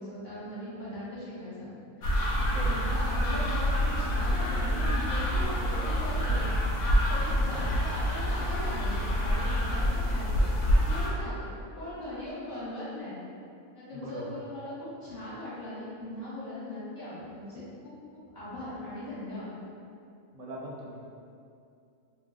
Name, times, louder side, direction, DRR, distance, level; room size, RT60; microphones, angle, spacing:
voice 1, 0.0-1.7 2.0-2.2 2.6-6.5 7.1-13.2 13.7-17.9 18.3-19.5, left 1 dB, 40° left, -12 dB, 0.9 m, -39 dB
sound 1, 2.0-11.1, equal, 70° left, 0.9 m, -27 dB
voice 2, 2.4-2.9 6.3-6.4 7.5-7.7 13.9-14.4 20.3-21.0, right 1 dB, 75° right, -4 dB, 1.0 m, -41 dB
2.5 x 2.2 x 3.6 m, 2.5 s
omnidirectional pair, 1.5 m